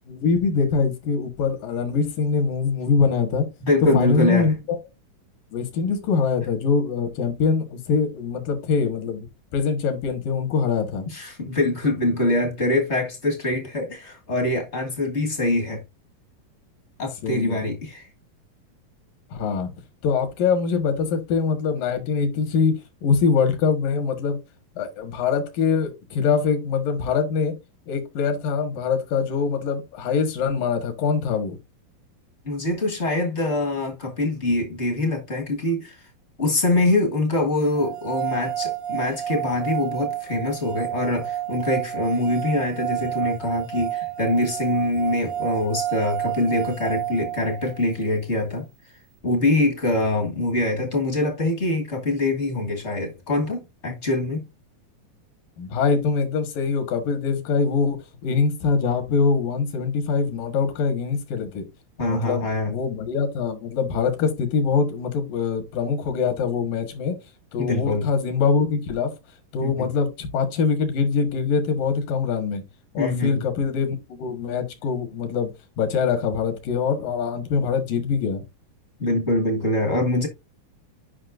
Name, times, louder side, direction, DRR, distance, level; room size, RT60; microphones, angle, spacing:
voice 1, 0.1-3.5 3.9-4.8 5.5-9.3 9.5-11.1 17.2-17.7 19.3-19.7 20.0-22.7 23.0-24.4 24.8-27.5 27.9-31.6 55.6-61.6 62.1-67.2 67.5-69.1 69.5-72.6 72.9-75.5 75.8-78.4, left 5 dB, 75° left, 3.2 m, -23 dB
voice 2, 3.6-4.5 11.1-15.8 17.0-18.1 32.4-35.9 36.4-48.6 49.2-54.4 62.0-62.7 67.6-68.1 69.6-69.9 73.0-73.4 79.0-80.3, left 2 dB, 40° left, 1.0 m, -24 dB
sound 1, 37.8-47.9, right 12 dB, 70° right, 1.1 m, -30 dB
9.6 x 5.7 x 2.6 m
omnidirectional pair, 4.0 m